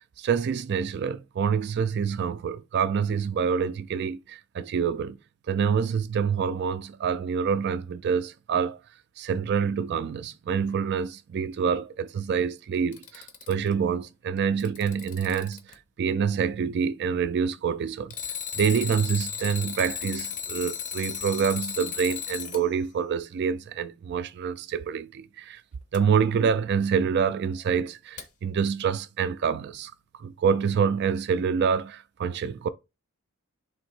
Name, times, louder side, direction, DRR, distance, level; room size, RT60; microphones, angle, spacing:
voice 1, 0.2-5.2 5.5-8.8 9.2-15.6 16.0-18.1 18.5-25.6 25.9-29.9 30.2-32.7, right 6 dB, 50° right, 0.3 m, -26 dB
Alarm, 12.7-13.7 14.4-15.7 18.1-22.6 25.9-26.0 28.2-28.3, left 7 dB, 35° left, 0.6 m, -35 dB
3.5 x 2.8 x 4.4 m
head